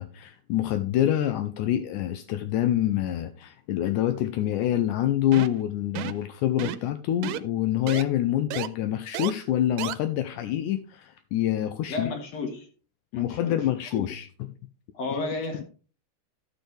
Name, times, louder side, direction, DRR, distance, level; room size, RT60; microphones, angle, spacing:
voice 1, 0.0-12.1 13.1-14.3 15.1-15.2 15.5-15.6, left 12 dB, 80° left, 2.1 m, -26 dB
sound 1, 5.3-5.6 6.0-6.2 6.6-6.9 7.2-7.4 7.9-8.0 8.5-8.7 9.1-9.3 9.8-9.9, right 13 dB, 90° right, 2.2 m, -32 dB
voice 2, 11.9-12.7 13.1-13.6 13.9-14.0 14.9-15.7, left 3 dB, 55° left, 2.5 m, -32 dB
14.0 x 6.6 x 3.3 m
omnidirectional pair, 3.7 m